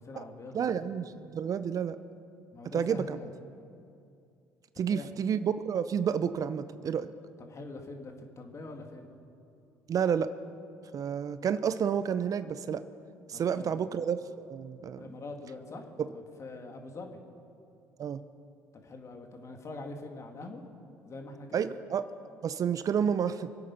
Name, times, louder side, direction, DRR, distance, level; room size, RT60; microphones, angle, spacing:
voice 1, 0.0-0.9 2.5-3.3 4.7-5.1 7.4-9.1 13.3-13.8 15.0-17.2 18.7-20.6 21.0-21.7, left 2 dB, 40° left, 3 dB, 2.3 m, -44 dB
voice 2, 0.5-2.0 2.7-3.2 4.8-7.1 9.9-10.3 10.9-12.8 13.3-15.0 18.0-18.2 21.5-23.5, right 7 dB, 50° right, 13 dB, 0.6 m, -30 dB
25.0 x 8.5 x 5.8 m, 2.6 s
hypercardioid pair, 65°, 8 cm